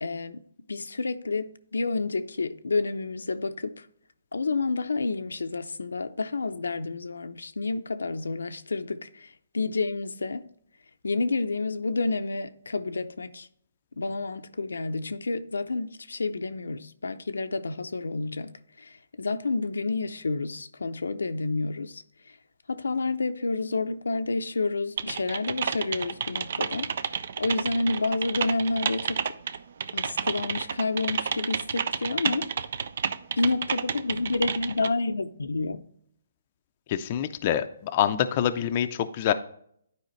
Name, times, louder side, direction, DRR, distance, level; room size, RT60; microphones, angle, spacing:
voice 1, 0.0-3.9 4.3-10.5 11.0-13.5 14.0-22.4 22.7-29.3 29.9-32.5 33.4-35.8, left 3 dB, 85° left, 0.5 m, -29 dB
Typing, 25.0-34.9, right 7 dB, 55° right, 0.4 m, -31 dB
voice 2, 36.9-39.3, left 10 dB, 35° left, 0.5 m, -26 dB
10.5 x 4.9 x 3.1 m
hypercardioid pair, 150°, 0 cm